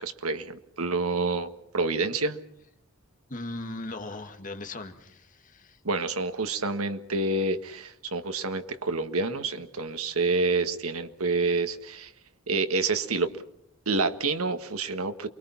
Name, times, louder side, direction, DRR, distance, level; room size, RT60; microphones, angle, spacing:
voice 1, 0.0-1.5 1.7-2.4 5.8-12.1 12.5-13.3 13.8-15.3, right 3 dB, 90° right, 8 dB, 1.7 m, -28 dB
voice 2, 3.3-5.8, left 2 dB, 35° left, 6 dB, 2.0 m, -38 dB
28.5 x 23.0 x 5.8 m, 0.75 s
head